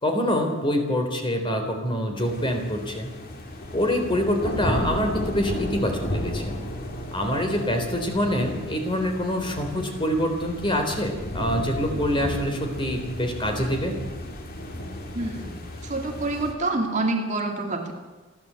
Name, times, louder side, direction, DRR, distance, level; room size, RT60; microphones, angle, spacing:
voice 1, 0.0-3.1 3.7-6.6 7.1-13.9, equal, 25° left, 4 dB, 3.7 m, -25 dB
sound 1, 2.2-16.5, left 1 dB, 50° left, 2.9 m, -33 dB
voice 2, 15.1-17.9, right 2 dB, 35° right, 3 dB, 2.3 m, -27 dB
29.5 x 11.5 x 8.3 m, 1.3 s
head